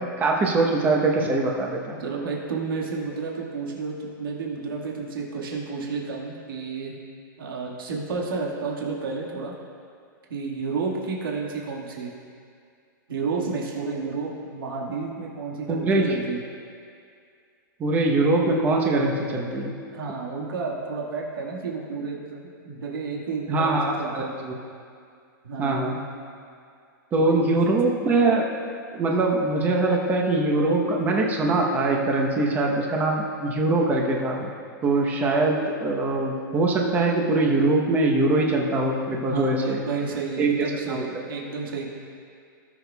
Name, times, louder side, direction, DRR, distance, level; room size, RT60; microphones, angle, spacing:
voice 1, 0.0-2.0 15.7-16.0 17.8-19.7 23.5-24.5 25.6-26.0 27.1-28.5 28.9-34.5 34.8-39.8 40.4-40.5 40.9-41.1, right 2 dB, 15° right, 0 dB, 0.9 m, -22 dB
voice 2, 2.0-6.9 7.4-9.5 10.3-12.1 13.1-16.4 19.9-24.4 25.4-25.9 27.1-27.5 39.1-41.9, right 4 dB, 85° right, -2 dB, 1.7 m, -31 dB
17.5 x 6.6 x 2.3 m, 2.3 s
hypercardioid pair, 160°, 11 cm